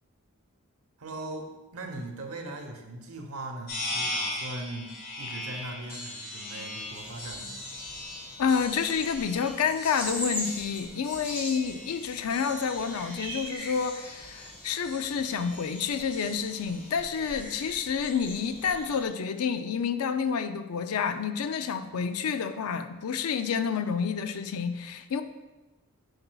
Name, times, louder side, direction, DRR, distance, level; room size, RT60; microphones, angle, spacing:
voice 1, 1.0-4.9 5.2-7.6, right 2 dB, 80° right, 3 dB, 0.9 m, -39 dB
sound 1, 3.7-17.7, left 1 dB, 45° left, 2.1 m, -40 dB
sound 2, 6.9-19.1, left 1 dB, 10° left, 1.5 m, -41 dB
voice 2, 8.4-25.2, left 6 dB, 80° left, 10 dB, 0.4 m, -29 dB
7.8 x 5.5 x 2.3 m, 1.1 s
head